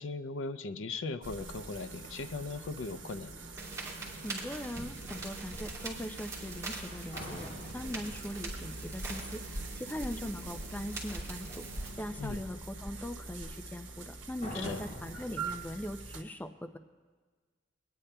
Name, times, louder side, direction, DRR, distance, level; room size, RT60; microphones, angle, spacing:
voice 1, 0.0-3.3 12.2-12.4 14.5-14.8, left 3 dB, 90° left, 12 dB, 0.5 m, -38 dB
sound 1, 1.2-16.2, right 2 dB, 80° right, 1.1 m, -44 dB
sound 2, 3.6-11.9, right 3 dB, 15° right, 2.9 m, -44 dB
voice 2, 4.2-11.6 12.0-16.8, left 1 dB, 10° left, 7 dB, 0.3 m, -41 dB
sound 3, 7.1-10.1 14.4-15.4, left 1 dB, 40° left, 3.0 m, -46 dB
24.5 x 10.0 x 2.2 m, 1.5 s
head